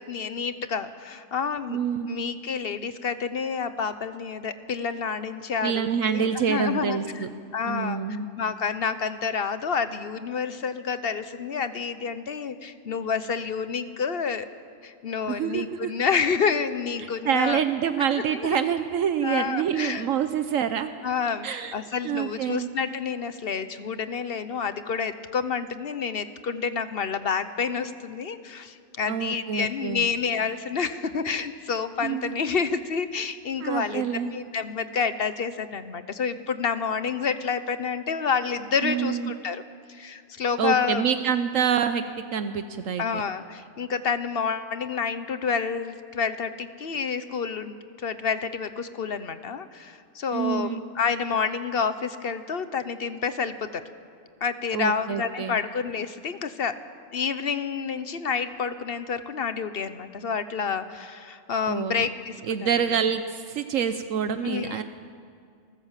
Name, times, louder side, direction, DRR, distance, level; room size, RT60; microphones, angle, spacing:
voice 1, 0.0-1.8 2.1-7.3 7.5-8.0 8.4-14.5 14.8-17.6 18.3-18.6 19.2-20.1 21.0-39.6 39.9-41.0 43.0-53.8 54.4-56.8 57.1-62.9 64.4-64.8, left 6 dB, 50° left, 12 dB, 1.0 m, -29 dB
voice 2, 1.7-2.1 5.6-7.3 7.6-8.3 15.3-15.9 17.0-20.9 21.4-21.7 22.0-22.7 29.1-30.1 32.0-32.3 33.6-34.3 38.8-39.3 40.6-42.0 42.3-43.2 50.3-50.8 54.7-55.6 61.7-62.1 62.5-64.8, right 8 dB, 75° right, 10 dB, 1.1 m, -26 dB
29.0 x 14.0 x 7.4 m, 2.2 s
omnidirectional pair, 1.4 m